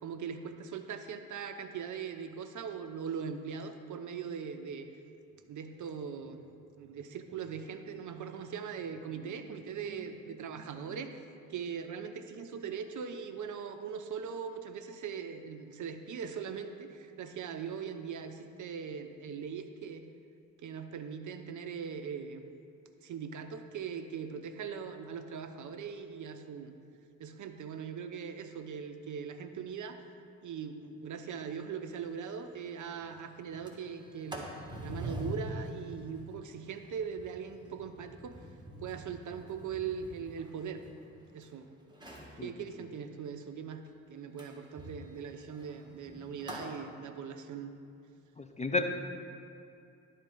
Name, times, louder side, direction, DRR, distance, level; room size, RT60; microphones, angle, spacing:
voice 1, 0.0-4.9 5.5-6.4 6.8-11.2 11.5-20.1 20.6-22.4 23.0-26.8 27.2-30.0 30.4-38.4 38.8-40.8 41.3-41.7 42.4-47.7, right 6 dB, 45° right, 8 dB, 0.6 m, -40 dB
Sliding door, 31.9-32.0 32.3-32.4 32.8-33.1 33.5-41.5 41.9-42.4 44.4-46.8, right 1 dB, 10° right, 1.6 m, -45 dB
voice 2, 48.4-48.8, left 3 dB, 15° left, 5 dB, 0.6 m, -31 dB
11.5 x 4.2 x 3.9 m, 2.5 s
figure-of-eight pair, 40°, 43 cm